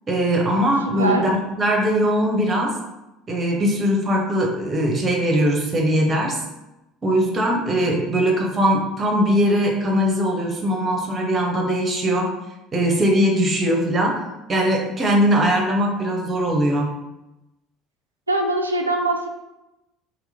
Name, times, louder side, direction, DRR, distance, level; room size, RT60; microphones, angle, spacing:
voice 1, 0.1-2.7 3.3-6.4 7.0-12.3 12.7-14.2 14.5-16.9, equal, 30° right, 0 dB, 0.8 m, -20 dB
voice 2, 18.3-19.3, right 2 dB, 85° right, 2 dB, 0.3 m, -22 dB
2.9 x 2.0 x 3.6 m, 0.94 s
figure-of-eight pair, 60°, 0 cm